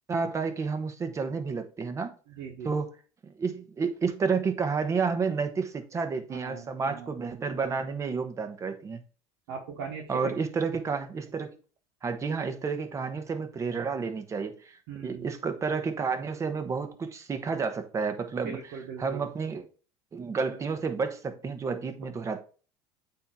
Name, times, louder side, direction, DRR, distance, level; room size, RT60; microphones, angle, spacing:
voice 1, 0.1-2.1 2.6-2.9 3.2-9.0 10.1-11.6 12.0-14.8 15.0-18.6 19.0-19.6 20.1-22.4, right 5 dB, 25° right, 1.2 m, -30 dB
voice 2, 2.3-2.7 6.3-7.1 9.5-10.4 14.9-15.3 18.4-19.3, right 6 dB, 75° right, 1.2 m, -40 dB
8.3 x 2.9 x 4.7 m
supercardioid pair, 100°, 12 cm